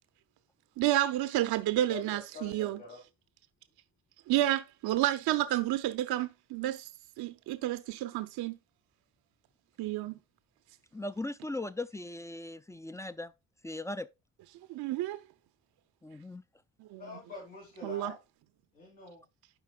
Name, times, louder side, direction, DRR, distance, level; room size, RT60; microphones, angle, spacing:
voice 1, 0.8-2.8 4.3-6.9 7.2-8.6 9.8-10.2 14.7-15.2 16.9-17.0 17.8-18.1, right 14 dB, 55° right, 0.6 m, -30 dB
voice 2, 1.9-3.0 17.0-18.2 18.7-19.2, left 3 dB, 80° left, 2.8 m, -45 dB
voice 3, 10.9-13.3 13.6-14.1 16.0-16.4, left 2 dB, 10° left, 0.3 m, -38 dB
11.5 x 4.8 x 2.3 m
hypercardioid pair, 45°, 45 cm